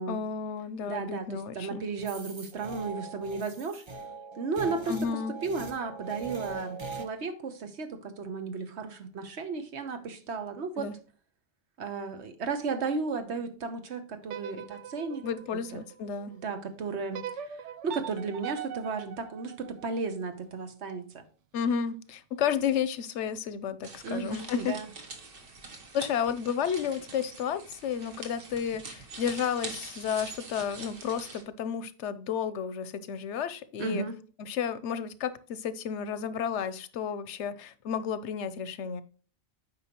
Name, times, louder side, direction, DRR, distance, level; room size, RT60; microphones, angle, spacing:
voice 1, 0.1-1.8 4.9-5.4 10.8-10.9 15.2-16.3 21.5-24.7 25.9-34.0 34.4-39.0, left 7 dB, 90° left, 1.0 m, -32 dB
voice 2, 0.8-3.8 4.4-5.0 5.4-10.9 11.8-15.2 15.7-15.8 16.3-17.5 17.8-21.2 24.0-24.9 33.8-34.1, right 4 dB, 75° right, 1.2 m, -34 dB
sound 1, 2.0-7.1, right 3 dB, 30° right, 0.6 m, -41 dB
sound 2, 14.2-16.4 17.1-20.3, right 9 dB, 90° right, 0.9 m, -42 dB
sound 3, 23.8-31.4, right 4 dB, 55° right, 1.3 m, -44 dB
8.9 x 5.1 x 2.9 m
omnidirectional pair, 1.2 m